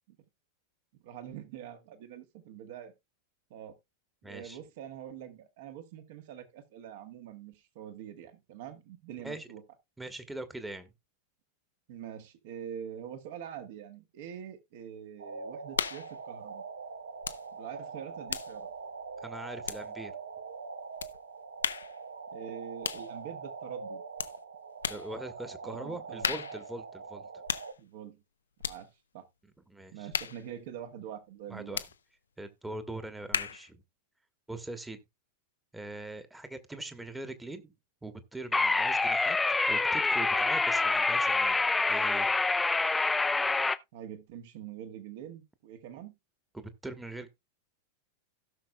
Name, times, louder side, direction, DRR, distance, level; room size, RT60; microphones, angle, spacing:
voice 1, 1.0-2.9 3.5-3.7 4.2-9.6 11.9-16.6 17.5-18.7 22.3-24.0 25.6-26.4 27.8-28.2 28.6-29.2 29.9-31.8 43.9-46.1, right 9 dB, 50° right, 1.5 m, -44 dB
voice 2, 4.2-4.6 9.2-9.5 10.0-10.9 19.2-20.1 24.8-27.3 29.7-30.1 31.5-31.8 32.4-33.8 34.5-35.0 35.7-37.7 38.0-41.6 41.9-42.3 46.5-47.3, right 2 dB, 5° right, 1.2 m, -42 dB
sound 1, 15.2-27.7, right 4 dB, 70° right, 0.8 m, -43 dB
sound 2, 15.7-16.2 17.2-17.5 17.8-20.2 21.0-21.2 21.6-22.0 22.8-23.1 24.2-24.4 24.8-25.1 26.2-26.7 27.5-27.8 28.6-28.8 30.1-30.5 31.7-32.0 33.3-33.7, left 7 dB, 70° left, 0.6 m, -35 dB
sound 3, 38.5-43.8, left 3 dB, 10° left, 0.5 m, -26 dB
16.5 x 6.4 x 2.3 m
figure-of-eight pair, 90°, 0 cm